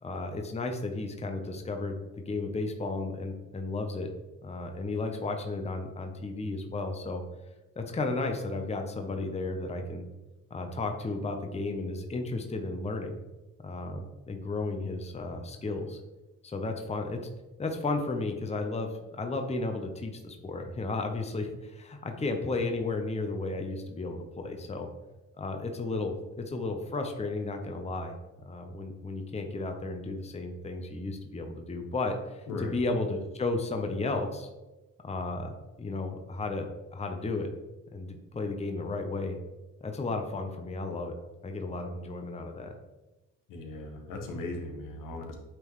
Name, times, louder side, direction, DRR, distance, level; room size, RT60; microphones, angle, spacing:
voice 1, 0.0-2.0 2.3-4.1 4.4-7.2 7.8-10.0 10.5-13.2 13.6-16.0 16.4-17.2 17.6-24.9 25.4-28.1 28.4-34.5 35.0-36.6 36.9-37.5 37.9-39.4 39.8-41.1 41.4-42.7, left 3 dB, 20° left, 4 dB, 0.8 m, -33 dB
voice 2, 32.5-32.8 43.5-45.3, left 2 dB, 75° left, 2 dB, 1.3 m, -38 dB
8.8 x 3.8 x 3.1 m, 1.1 s
cardioid pair, 75°, 32 cm